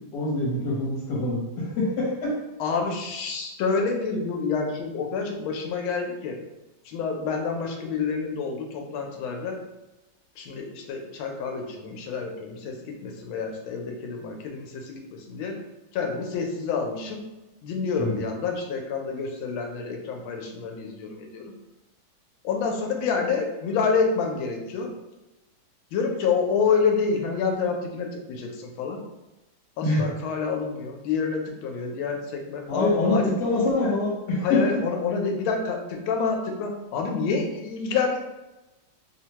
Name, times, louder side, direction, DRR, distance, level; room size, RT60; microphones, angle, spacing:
voice 1, 0.1-2.4 18.0-18.2 29.8-30.0 32.7-34.8, left 2 dB, 65° left, -4 dB, 1.4 m, -25 dB
voice 2, 2.6-6.4 6.8-9.6 10.4-12.8 13.0-15.6 15.9-17.2 17.6-21.4 22.4-24.9 25.9-29.0 29.8-33.3 34.4-38.2, left 5 dB, 90° left, 2 dB, 1.4 m, -28 dB
3.3 x 2.1 x 2.8 m, 1.0 s
omnidirectional pair, 2.2 m